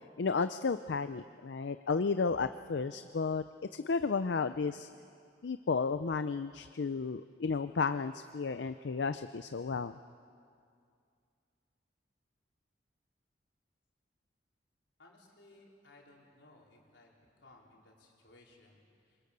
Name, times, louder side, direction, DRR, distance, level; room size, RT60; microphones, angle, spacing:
voice 1, 0.2-3.4 3.7-4.9 5.4-9.9, left 4 dB, 70° left, 11 dB, 0.5 m, -33 dB
voice 2, 15.0-19.2, left 2 dB, 90° left, -2 dB, 4.4 m, -61 dB
26.0 x 23.5 x 6.8 m, 2.3 s
head